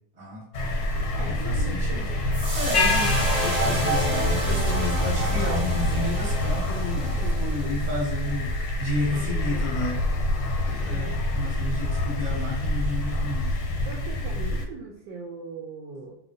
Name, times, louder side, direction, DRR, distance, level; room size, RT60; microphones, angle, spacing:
voice 1, 0.2-0.7 1.2-2.1 2.5-7.0 7.4-10.0 10.6-13.5, left 1 dB, 25° right, -5 dB, 1.0 m, -32 dB
sound 1, 0.5-14.7, left 1 dB, 85° left, 1.4 m, -27 dB
voice 2, 1.2-2.3 6.9-7.5 9.1-9.8 10.8-11.2 13.8-16.2, right 4 dB, 75° right, -1 dB, 1.0 m, -40 dB
sound 2, 2.3-8.7, right 2 dB, 55° right, 0.6 m, -31 dB
sound 3, 2.7-6.0, left 3 dB, 70° left, 1.0 m, -29 dB
3.0 x 2.9 x 2.6 m, 0.74 s
omnidirectional pair, 2.3 m